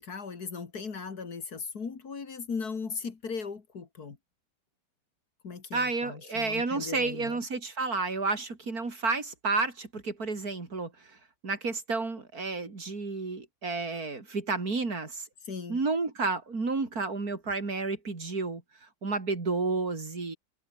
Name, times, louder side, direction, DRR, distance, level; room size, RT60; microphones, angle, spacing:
voice 1, 0.0-4.2 5.4-7.4 15.4-15.8, left 5 dB, 50° left, 2.6 m, -38 dB
voice 2, 5.7-10.9 11.4-15.3 15.7-18.6 19.0-20.4, right 3 dB, 45° right, 4.0 m, -31 dB
omnidirectional pair, 2.2 m